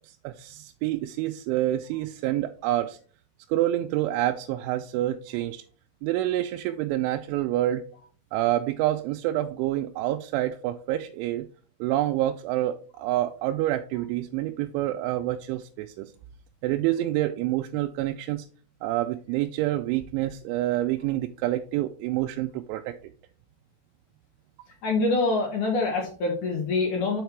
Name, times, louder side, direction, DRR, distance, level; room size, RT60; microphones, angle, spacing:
voice 1, 0.1-3.0 3.5-5.6 6.0-7.8 8.3-11.5 11.8-16.1 16.6-18.5 18.8-22.9, right 14 dB, 85° right, 5 dB, 2.8 m, -27 dB
voice 2, 24.8-27.2, left 3 dB, 65° left, 0 dB, 2.1 m, -25 dB
6.6 x 5.3 x 4.5 m, 0.41 s
omnidirectional pair, 5.6 m